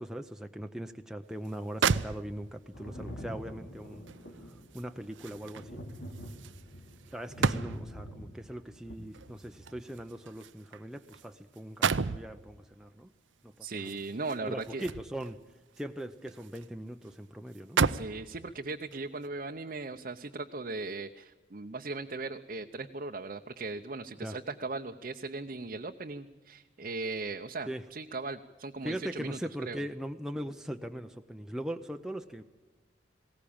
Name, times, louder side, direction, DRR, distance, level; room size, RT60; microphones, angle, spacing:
voice 1, 0.0-4.1 4.4-5.8 7.1-13.1 13.4-13.9 14.4-15.4 15.8-17.8 24.2-24.4 27.7-27.8 28.8-32.4, right 1 dB, 5° right, 5 dB, 0.6 m, -40 dB
sound 1, 1.4-1.5 1.8-2.7 4.1-8.0 9.1-11.3 11.5-12.3 13.8-15.3 15.8-16.7 17.0-17.1 17.5-18.2 18.9-19.1, right 5 dB, 90° right, 0.6 m, -33 dB
Thunder, 2.7-10.1 11.2-11.3, equal, 65° left, 3.2 m, -45 dB
voice 2, 13.6-14.9 17.9-29.4 29.6-29.8, right 3 dB, 45° right, 4 dB, 0.7 m, -38 dB
20.5 x 18.0 x 8.7 m, 1.2 s
head